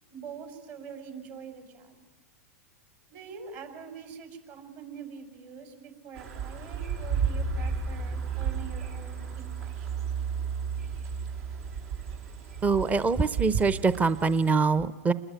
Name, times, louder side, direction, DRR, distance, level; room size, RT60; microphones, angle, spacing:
voice 1, 0.1-2.0 3.1-10.1, right 6 dB, 45° right, 6 dB, 6.1 m, -44 dB
sound 1, 6.2-14.5, right 6 dB, 70° right, 5.9 m, -33 dB
voice 2, 12.6-15.1, right 4 dB, 20° right, 15 dB, 0.9 m, -24 dB
29.0 x 21.0 x 9.3 m, 1.2 s
hypercardioid pair, 120°, 8 cm